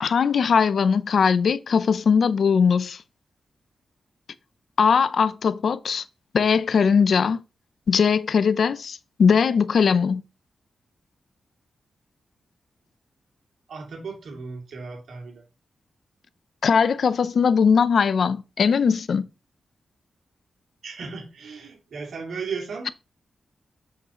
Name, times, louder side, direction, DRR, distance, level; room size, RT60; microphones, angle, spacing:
voice 1, 0.0-3.0 4.8-6.0 6.3-7.4 7.9-10.2 16.6-19.3, left 6 dB, 65° left, 0.5 m, -20 dB
voice 2, 13.7-15.4 20.8-22.9, right 5 dB, 75° right, 2.6 m, -35 dB
8.0 x 6.5 x 3.0 m
wide cardioid pair, 110°, 0 cm